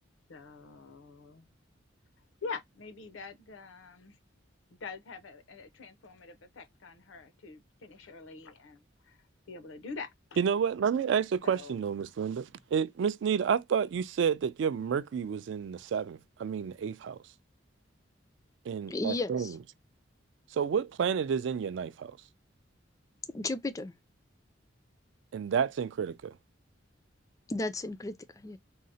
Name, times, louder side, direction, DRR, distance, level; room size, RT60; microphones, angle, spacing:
voice 1, 0.3-1.5 2.4-4.2 4.7-9.2 9.5-10.1 11.4-11.8, left 4 dB, 85° left, 0.6 m, -45 dB
voice 2, 10.4-17.2 18.7-19.6 20.5-22.2 25.3-26.4, right 7 dB, 65° right, 0.3 m, -30 dB
voice 3, 18.9-19.5 23.3-23.9 27.5-28.6, left 2 dB, 15° left, 0.3 m, -34 dB
3.8 x 2.0 x 2.6 m
head